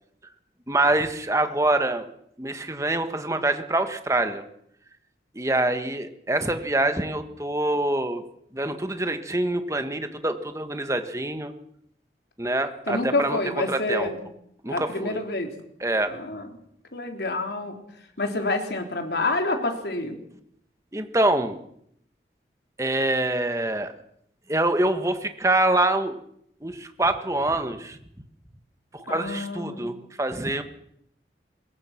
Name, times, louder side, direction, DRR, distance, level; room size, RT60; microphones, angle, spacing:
voice 1, 0.7-2.1 2.4-4.4 5.3-8.2 8.5-11.5 12.4-13.4 13.7-14.1 14.6-15.2 15.8-16.1 20.9-21.6 22.8-23.9 24.5-26.2 26.6-28.0 28.9-30.6, right 2 dB, 15° right, 8 dB, 1.6 m, -25 dB
voice 2, 12.9-14.2 14.7-15.5 16.1-16.5 16.9-17.8 18.2-20.2 29.1-29.9, left 2 dB, 70° left, 4 dB, 3.9 m, -28 dB
23.5 x 21.0 x 6.0 m, 0.71 s
head